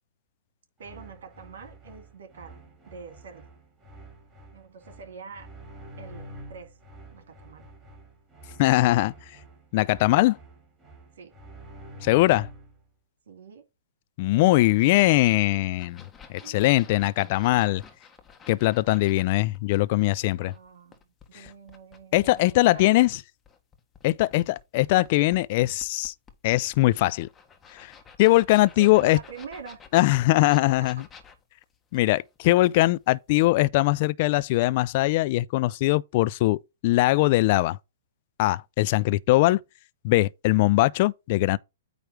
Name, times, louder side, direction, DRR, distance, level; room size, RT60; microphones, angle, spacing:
sound 1, 0.8-12.8, right 1 dB, 15° right, 3.0 m, -47 dB
voice 1, 0.8-2.6 2.9-3.5 4.5-5.5 6.0-6.8 7.1-7.7 10.0-10.1 11.2-11.3 13.3-13.6 16.4-17.1 20.4-21.0 21.3-23.0 24.2-24.6 28.8-29.8, right 5 dB, 70° right, 2.5 m, -44 dB
voice 2, 8.6-9.1 9.7-10.4 12.0-12.5 14.2-16.0 16.3-17.8 18.5-20.5 21.3-21.5 22.1-23.1 24.0-26.1 26.4-27.3 27.7-27.9 28.2-29.2 29.9-31.1 31.9-37.8 38.4-39.6 40.0-41.6, left 18 dB, 45° left, 0.4 m, -21 dB
sound 2, 15.8-19.3 19.5-23.1 23.4-33.1 33.4-33.5, left 6 dB, 15° left, 1.5 m, -51 dB
9.0 x 3.2 x 6.0 m
hypercardioid pair, 120°, 0 cm